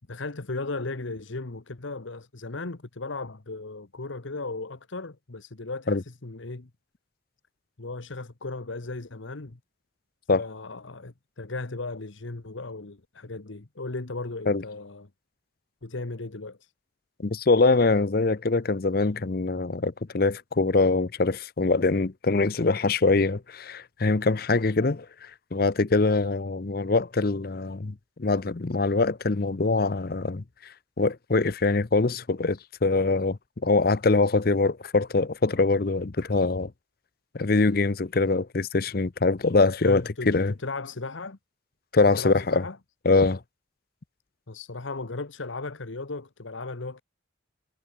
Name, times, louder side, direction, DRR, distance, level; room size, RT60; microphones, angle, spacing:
voice 1, 0.1-6.7 7.8-9.6 10.3-15.1 15.8-16.7 39.8-41.4 42.2-42.8 44.5-47.0, left 3 dB, 80° left, 1.2 m, -36 dB
voice 2, 17.2-36.7 37.3-40.5 41.9-42.6 43.0-43.4, left 3 dB, 50° left, 0.7 m, -23 dB
head